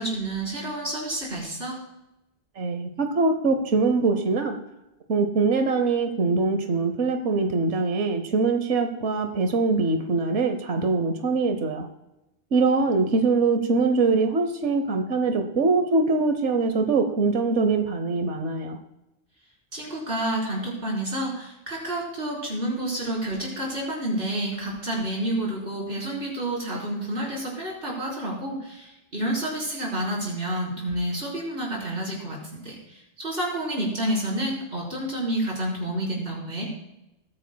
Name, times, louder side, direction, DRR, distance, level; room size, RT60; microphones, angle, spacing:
voice 1, 0.0-1.8 19.7-36.7, right 1 dB, 55° right, -3 dB, 4.4 m, -29 dB
voice 2, 2.6-4.6 5.1-11.9 12.5-18.8, right 3 dB, 90° right, 7 dB, 1.2 m, -23 dB
20.5 x 9.9 x 2.2 m, 0.93 s
omnidirectional pair, 1.2 m